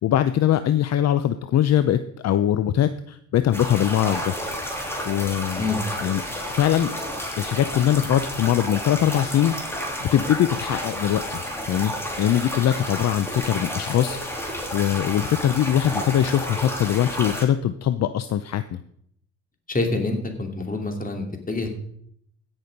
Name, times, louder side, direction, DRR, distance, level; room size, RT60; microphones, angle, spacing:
voice 1, 0.0-4.3 5.0-5.7 6.0-6.2 6.5-6.9 7.4-11.9 12.2-18.8, left 11 dB, 60° left, 12 dB, 0.6 m, -22 dB
sound 1, 3.5-17.4, equal, 10° left, 3.0 m, -31 dB
voice 2, 19.7-21.7, left 3 dB, 30° left, 4 dB, 2.7 m, -26 dB
16.5 x 6.3 x 5.3 m, 0.69 s
cardioid pair, 90°, 30 cm